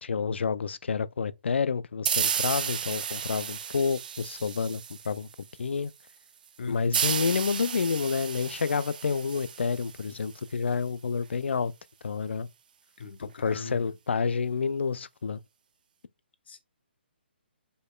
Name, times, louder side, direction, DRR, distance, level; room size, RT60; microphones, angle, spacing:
voice 1, 0.0-5.3 5.6-5.9 6.7-11.7 12.0-12.5 13.4-15.4, left 5 dB, 90° left, 0.4 m, -29 dB
sound 1, 2.1-5.4 6.9-10.4, right 7 dB, 50° right, 0.5 m, -32 dB
voice 2, 6.6-7.0 13.0-14.0 16.5-16.6, left 4 dB, 70° left, 0.8 m, -38 dB
5.1 x 4.3 x 2.2 m
hypercardioid pair, 165°, 6 cm